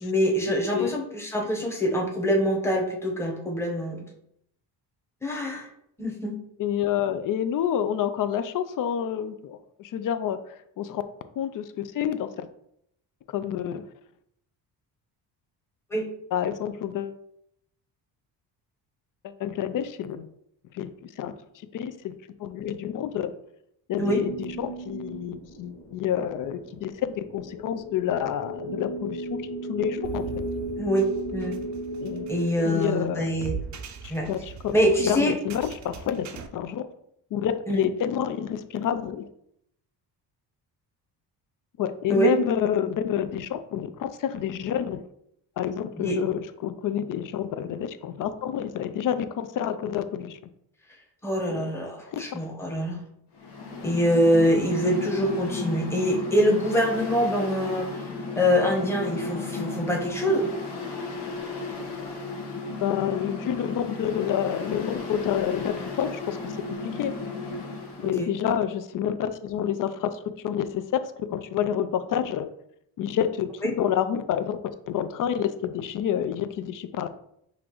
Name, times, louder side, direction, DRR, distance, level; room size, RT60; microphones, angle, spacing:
voice 1, 0.0-4.0 5.2-5.7 6.0-6.4 15.9-16.1 24.0-24.2 30.8-31.6 32.3-33.6 34.1-34.3 34.7-35.3 37.7-37.9 42.1-42.3 46.0-46.2 51.2-53.0 53.8-58.0 58.4-60.5 68.2-68.3 73.6-73.7, equal, 5° left, -1 dB, 0.9 m, -24 dB
voice 2, 6.6-11.0 11.4-12.5 13.3-13.8 16.3-17.2 19.2-20.3 20.7-21.3 21.7-22.1 22.4-23.3 23.9-29.4 29.7-30.2 32.0-32.3 32.6-33.3 34.0-34.7 35.0-36.9 37.3-39.3 41.8-45.0 45.6-50.4 51.5-51.7 52.1-52.2 62.8-67.1 68.0-72.5 73.0-74.6 74.9-77.1, left 9 dB, 55° left, 11 dB, 0.4 m, -28 dB
sound 1, 24.0-33.8, equal, 30° left, 1.5 m, -36 dB
sound 2, 30.0-36.5, right 6 dB, 45° right, 0.5 m, -40 dB
Mechanical fan, 53.3-68.2, left 4 dB, 80° left, 1.2 m, -34 dB
5.7 x 2.5 x 3.0 m, 0.73 s
cardioid pair, 105°, 40 cm